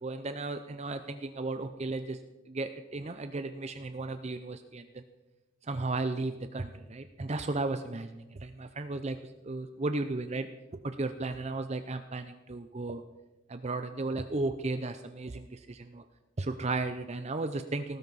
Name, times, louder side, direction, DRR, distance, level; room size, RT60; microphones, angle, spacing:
voice 1, 0.0-2.2 2.5-5.0 5.7-9.2 9.4-10.5 10.8-13.0 13.5-16.0 16.4-18.0, right 2 dB, 30° right, 9 dB, 0.6 m, -35 dB
18.5 x 15.0 x 4.1 m, 1.0 s
head